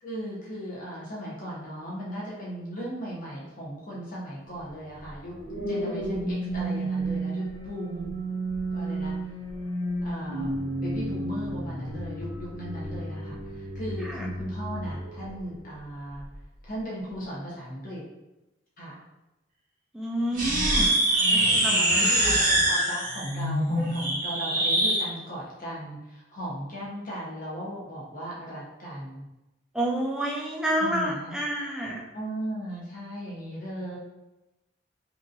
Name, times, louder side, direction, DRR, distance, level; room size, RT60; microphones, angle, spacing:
voice 1, 0.0-5.4 5.7-8.1 8.7-9.1 10.0-10.5 10.8-16.2 16.6-18.0 18.8-19.0 21.0-29.3 30.8-31.4 32.1-34.0, equal, 45° left, -5 dB, 0.8 m, -37 dB
sound 1, 5.0-15.6 16.1-16.4, right 1 dB, 85° left, 1.3 m, -32 dB
voice 2, 19.9-22.1 29.7-32.0, right 1 dB, 5° right, -3 dB, 0.4 m, -29 dB
sound 2, 20.3-25.0, right 1 dB, 40° right, 0.7 m, -23 dB
2.8 x 2.5 x 2.6 m, 0.98 s
head